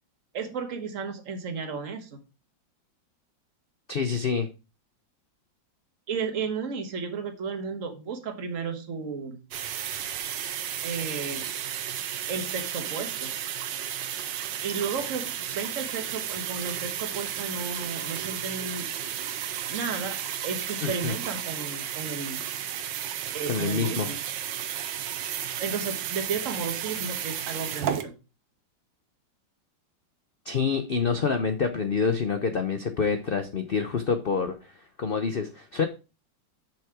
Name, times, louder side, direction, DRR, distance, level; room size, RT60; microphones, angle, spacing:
voice 1, 0.3-2.2 6.1-9.4 10.8-11.5 12.3-13.3 14.6-18.9 19.7-22.5 23.3-24.1 25.6-28.2, right 5 dB, 45° right, 6 dB, 1.5 m, -33 dB
voice 2, 3.9-4.5 20.8-21.1 23.5-24.1 30.5-34.6 35.0-35.9, left 5 dB, 70° left, 8 dB, 0.5 m, -27 dB
sound 1, 9.5-28.0, right 10 dB, 75° right, 1.4 m, -33 dB
7.1 x 5.9 x 4.7 m, 0.30 s
omnidirectional pair, 2.0 m